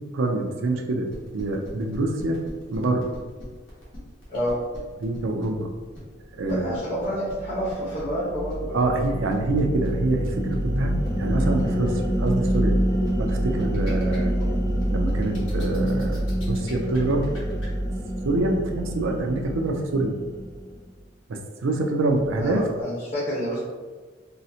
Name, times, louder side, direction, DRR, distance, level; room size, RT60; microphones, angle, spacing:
voice 1, 0.1-2.4 2.7-3.1 5.0-5.7 6.3-6.8 8.7-12.8 13.2-14.3 14.9-17.3 18.2-20.2 21.3-22.7, right 2 dB, 75° right, 3 dB, 0.5 m, -26 dB
sound 1, 1.1-17.7, left 1 dB, 70° left, 1.1 m, -44 dB
voice 2, 6.4-9.0 22.4-23.6, equal, 40° left, -10 dB, 0.9 m, -29 dB
sound 2, 6.6-20.9, equal, 15° left, 0.6 m, -27 dB
3.8 x 2.0 x 2.7 m, 1.4 s
head